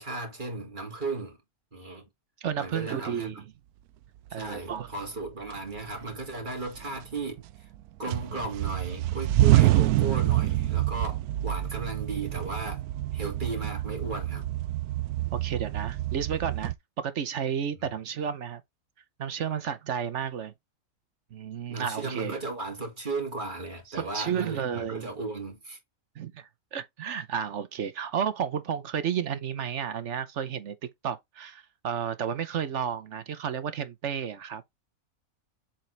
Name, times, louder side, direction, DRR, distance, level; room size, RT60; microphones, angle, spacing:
voice 1, 0.0-1.4 1.7-2.1 2.6-3.4 4.3-7.7 8.0-12.8 13.1-14.4 21.7-25.8, right 3 dB, 35° right, 2.7 m, -36 dB
voice 2, 2.4-3.4 4.3-4.9 15.3-18.6 19.2-20.5 21.3-22.4 23.9-25.1 26.2-30.8 31.0-34.6, right 8 dB, 60° right, 1.0 m, -32 dB
sound 1, 4.9-5.0 5.5-6.2 6.6-7.8 8.1-16.8, right 15 dB, 80° right, 1.1 m, -26 dB
7.6 x 4.3 x 3.3 m
omnidirectional pair, 1.6 m